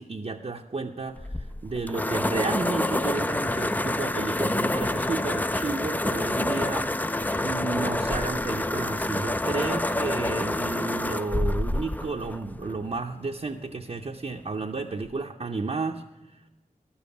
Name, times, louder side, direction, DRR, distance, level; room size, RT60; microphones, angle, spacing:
voice 1, 0.0-6.9 7.4-16.0, right 3 dB, 45° right, 1 dB, 0.6 m, -32 dB
sound 1, 1.2-13.0, left 1 dB, 10° left, 0.3 m, -28 dB
12.0 x 7.2 x 6.8 m, 1.0 s
wide cardioid pair, 45°, 15 cm